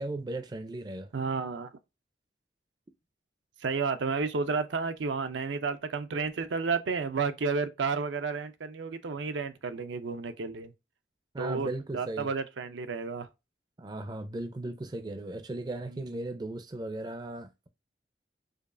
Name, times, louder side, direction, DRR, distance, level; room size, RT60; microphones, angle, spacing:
voice 1, 0.0-1.1 11.3-12.3 13.8-17.7, right 2 dB, 20° right, 0.4 m, -37 dB
voice 2, 1.1-1.7 3.6-10.7 11.4-13.3, right 4 dB, 85° right, 0.5 m, -31 dB
5.1 x 2.3 x 2.5 m
head